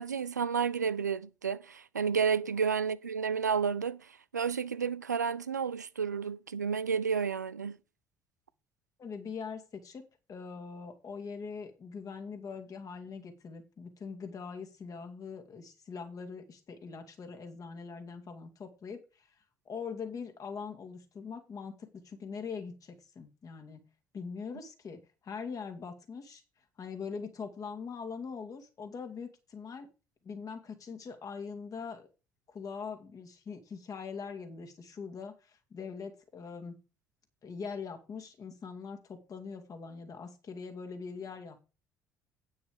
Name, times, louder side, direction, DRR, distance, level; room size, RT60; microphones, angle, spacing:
voice 1, 0.0-4.0 4.3-7.8, right 6 dB, 85° right, 0.4 m, -31 dB
voice 2, 9.0-19.3 19.7-23.8 24.1-26.4 26.8-29.9 30.2-32.1 32.5-36.8 37.4-41.6, left 5 dB, 40° left, 2.5 m, -42 dB
9.3 x 7.2 x 5.1 m
figure-of-eight pair, 50°, 9 cm